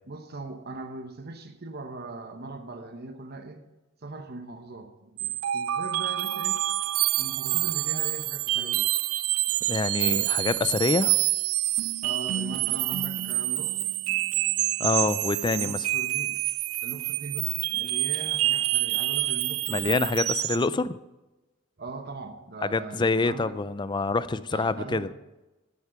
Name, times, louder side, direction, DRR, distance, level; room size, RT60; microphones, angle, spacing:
voice 1, 0.1-3.6 4.0-6.6 7.2-8.9 12.0-13.9 15.5-16.4 16.8-20.0 21.8-23.6 24.5-25.1, right 3 dB, 50° right, 6 dB, 1.0 m, -40 dB
sound 1, 5.2-20.7, right 16 dB, 85° right, 0.3 m, -27 dB
voice 2, 9.7-11.2 14.8-15.9 19.7-21.0 22.6-25.1, left 3 dB, 20° left, 15 dB, 0.4 m, -26 dB
11.5 x 8.3 x 5.7 m, 1.0 s
head